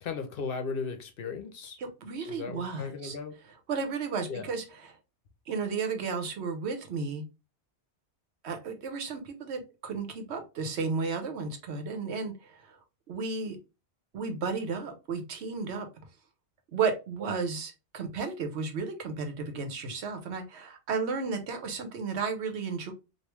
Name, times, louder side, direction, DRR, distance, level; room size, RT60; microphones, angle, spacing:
voice 1, 0.0-1.8 2.3-3.4 4.3-4.5, left 5 dB, 65° left, 0.8 m, -36 dB
voice 2, 1.8-3.1 3.7-4.9 5.5-7.2 8.4-12.8 13.1-13.6 14.1-15.9 16.7-22.9, right 5 dB, 85° right, 1.0 m, -33 dB
3.0 x 2.5 x 3.3 m
omnidirectional pair, 1.1 m